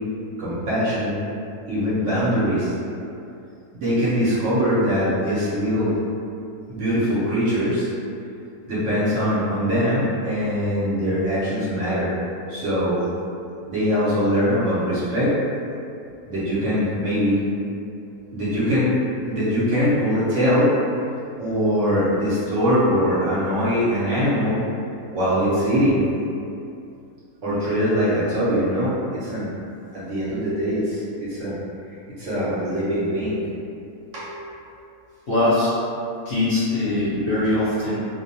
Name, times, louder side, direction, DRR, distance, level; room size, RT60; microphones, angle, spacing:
voice 1, 0.4-1.2 1.7-2.7 3.7-5.9 6.7-7.9 8.7-12.1 12.5-13.0 13.7-15.3 16.3-17.4 18.3-18.9 19.2-20.7 21.4-24.6 25.1-26.1 27.4-29.5 29.9-31.6 32.2-33.4 34.1-34.3, equal, 60° right, -10 dB, 0.9 m, -22 dB
voice 2, 35.3-35.7 36.3-38.0, left 2 dB, 60° left, -11 dB, 0.7 m, -21 dB
2.5 x 2.1 x 2.7 m, 2.6 s
omnidirectional pair, 1.6 m